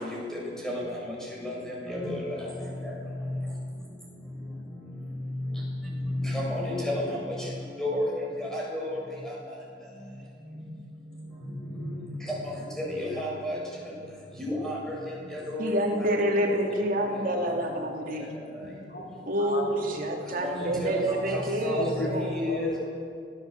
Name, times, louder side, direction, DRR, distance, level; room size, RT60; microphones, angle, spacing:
voice 1, 8.5-8.9 13.2-13.5 14.4-14.7 15.5-15.7 20.4-20.5 20.8-20.9 21.7-21.8 22.4-22.5, equal, 5° left, -4 dB, 7.4 m, -31 dB
voice 2, 15.6-18.3 19.3-22.4, right 1 dB, 50° right, 1 dB, 3.1 m, -28 dB
voice 3, 18.1-19.1 19.4-20.3 21.1-22.1 22.4-22.8, left 1 dB, 70° left, 0 dB, 4.0 m, -35 dB
26.5 x 15.5 x 8.5 m, 2.3 s
head